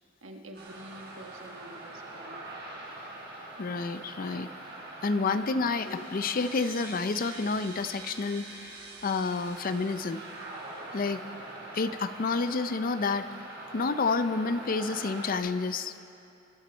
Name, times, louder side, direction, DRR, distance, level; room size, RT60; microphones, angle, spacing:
voice 1, 0.2-2.4, equal, 85° right, 3 dB, 1.4 m, -47 dB
sound 1, 0.5-15.4, right 2 dB, 60° right, 3.9 m, -43 dB
voice 2, 3.6-4.5 5.0-8.8 9.0-10.2 10.9-11.2 11.7-13.3 13.7-15.9, left 4 dB, 45° left, 11 dB, 0.5 m, -29 dB
24.5 x 10.5 x 4.4 m, 2.7 s
head